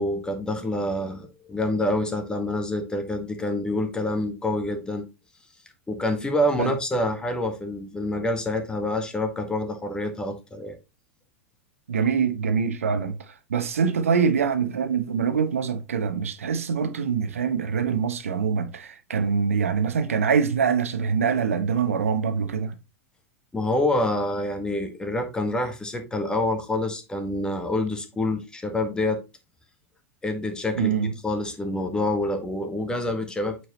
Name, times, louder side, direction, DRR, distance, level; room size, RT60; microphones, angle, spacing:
voice 1, 0.0-5.0 5.9-10.8 23.5-29.2 30.2-30.9 31.2-33.7, left 1 dB, 10° left, 1.6 m, -27 dB
voice 2, 11.9-22.7 30.8-31.1, right 6 dB, 75° right, 1.1 m, -24 dB
8.7 x 4.7 x 3.1 m
figure-of-eight pair, 90°, 8 cm